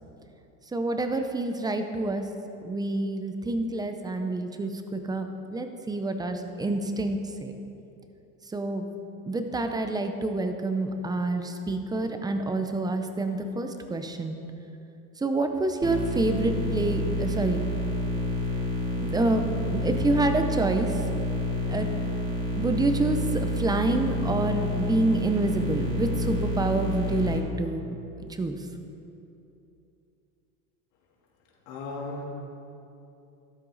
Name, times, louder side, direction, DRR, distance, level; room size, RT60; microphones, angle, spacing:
voice 1, 0.7-2.2 2.6-7.5 8.5-8.9 9.3-14.4 15.2-17.6 19.0-20.9 21.7-21.9 22.3-27.9 28.4-28.5, right 2 dB, 10° right, 6 dB, 0.6 m, -27 dB
sound 1, 15.8-27.4, equal, 35° right, 2.8 m, -29 dB
voice 2, 31.6-32.3, left 3 dB, 75° left, -3 dB, 3.2 m, -35 dB
13.0 x 12.5 x 4.0 m, 2.8 s
supercardioid pair, 145°, 40 cm